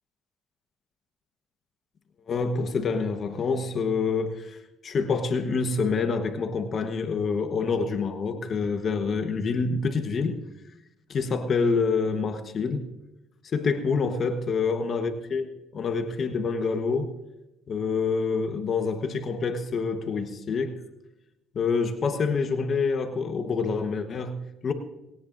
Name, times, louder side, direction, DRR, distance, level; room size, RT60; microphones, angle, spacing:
voice 1, 2.3-10.4 11.1-12.9 13.4-17.1 17.7-20.7 21.5-24.7, left 4 dB, 45° left, 8 dB, 1.1 m, -27 dB
20.0 x 17.5 x 2.6 m, 0.96 s
cardioid pair, 100°, 0 cm